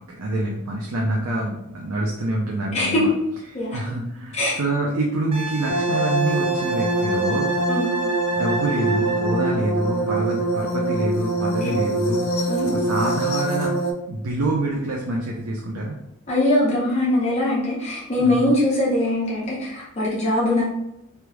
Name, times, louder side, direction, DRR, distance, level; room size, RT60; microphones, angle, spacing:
voice 1, 0.0-3.1 3.7-7.5 8.3-13.7 14.1-16.0 18.2-18.5, right 1 dB, 80° right, -1 dB, 0.5 m, -26 dB
voice 2, 2.7-3.2 3.5-3.8 4.3-4.6 7.7-7.9 11.6-11.7 12.5-12.7 16.3-20.6, left 1 dB, 30° left, -6 dB, 0.7 m, -22 dB
Wind instrument woodwind instrument, 5.3-9.6 12.2-12.4, right 3 dB, 25° right, 0.6 m, -31 dB
sound 1, 5.7-13.9, right 2 dB, 65° left, 0.5 m, -24 dB
3.3 x 3.0 x 2.2 m, 0.84 s
head